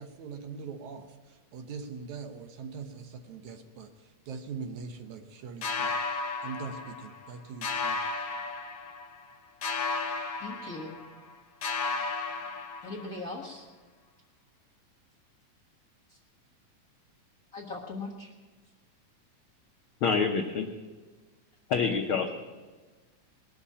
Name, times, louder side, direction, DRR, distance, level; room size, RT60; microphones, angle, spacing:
voice 1, 0.0-5.9 6.4-8.0, right 5 dB, 70° right, 7 dB, 2.2 m, -42 dB
sound 1, 5.6-7.3 7.6-9.3 9.6-11.3 11.6-13.3, left 3 dB, 60° left, 2.1 m, -34 dB
voice 2, 10.4-11.0 12.8-13.6 16.1-16.2 17.5-18.3, left 2 dB, 40° left, -4 dB, 1.2 m, -39 dB
voice 3, 20.0-20.7 21.7-22.3, left 5 dB, 80° left, 3 dB, 1.1 m, -27 dB
20.5 x 7.1 x 8.5 m, 1.3 s
omnidirectional pair, 3.7 m